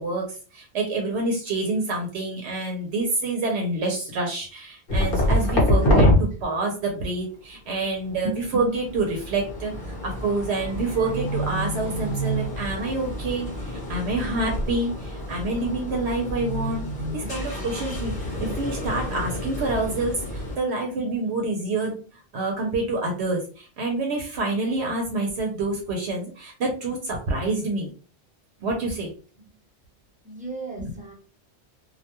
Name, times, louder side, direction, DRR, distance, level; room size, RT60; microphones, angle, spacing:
voice 1, 0.0-16.9 17.1-22.0 22.3-27.9 28.6-29.1 30.8-30.9, right 2 dB, 75° right, 1 dB, 0.9 m, -27 dB
sound 1, 4.9-6.2 7.8-20.6, equal, 55° left, 1.0 m, -27 dB
voice 2, 30.2-31.1, right 3 dB, 10° right, -3 dB, 0.7 m, -37 dB
2.4 x 2.2 x 2.8 m, 0.38 s
omnidirectional pair, 1.1 m